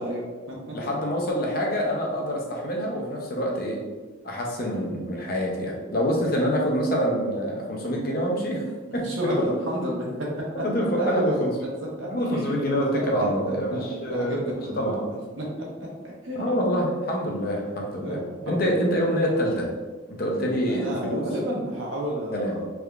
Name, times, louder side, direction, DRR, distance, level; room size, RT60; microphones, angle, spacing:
voice 1, 0.0-0.8 9.0-10.5 11.0-11.5 12.0-13.3 13.7-15.1 15.4-15.5 15.8-15.9 16.2-16.6 18.0-18.7 20.7-22.6, equal, 80° right, -3 dB, 1.0 m, -31 dB
voice 2, 0.7-3.8 4.2-8.7 8.9-9.5 10.5-11.5 12.1-15.0 16.4-19.7 20.1-21.2 22.3-22.6, equal, 50° left, -1 dB, 0.6 m, -26 dB
3.5 x 3.3 x 2.4 m, 1.3 s
head